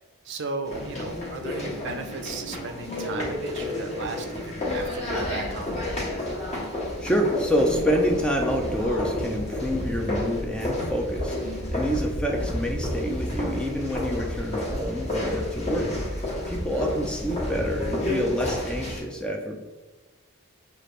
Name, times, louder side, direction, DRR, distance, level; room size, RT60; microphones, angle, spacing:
voice 1, 0.2-5.8 16.7-17.0, right 3 dB, 55° right, 6 dB, 0.5 m, -36 dB
sound 1, 0.6-19.0, left 1 dB, 30° left, 1.2 m, -30 dB
voice 2, 7.0-15.9 16.5-19.6, equal, 5° left, 2 dB, 0.4 m, -27 dB
6.5 x 2.5 x 3.1 m, 1.2 s
head